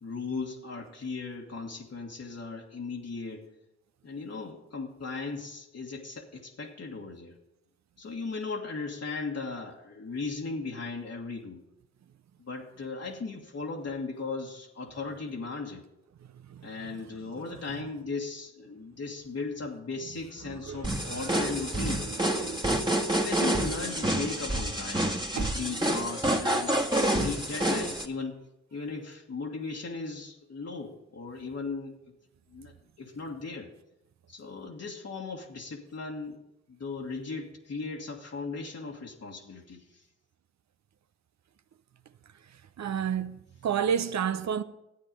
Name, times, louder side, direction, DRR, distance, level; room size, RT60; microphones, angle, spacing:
voice 1, 0.0-3.5 4.0-7.4 8.0-11.6 12.4-15.8 16.6-22.0 23.2-26.8 27.1-28.4 28.7-32.0 32.5-33.7 34.3-36.4 36.7-40.0, left 4 dB, 60° left, 1.7 m, -37 dB
voice 2, 16.5-16.9 20.5-21.2 21.7-22.6 25.4-25.5 42.8-44.6, right 8 dB, 65° right, 0.7 m, -32 dB
sound 1, 20.8-28.0, right 1 dB, 15° right, 1.6 m, -28 dB
12.0 x 8.7 x 5.3 m
supercardioid pair, 45°, 29 cm